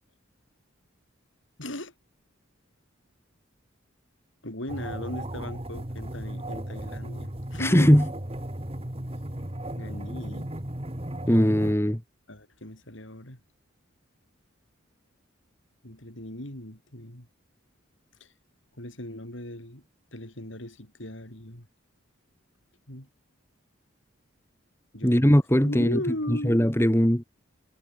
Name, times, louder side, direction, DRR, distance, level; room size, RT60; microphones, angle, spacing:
voice 1, 1.6-1.9 4.4-7.9 9.8-10.5 12.3-13.4 15.8-17.3 18.2-18.3 18.8-19.8 20.1-21.7 22.9-23.1 24.9-25.3 25.6-26.6, left 1 dB, 70° left, 6.8 m, -37 dB
sound 1, 4.7-11.7, right 1 dB, 30° right, 2.3 m, -35 dB
voice 2, 7.6-8.1 11.3-12.0 25.0-26.0 26.3-27.2, equal, 10° left, 2.3 m, -20 dB
head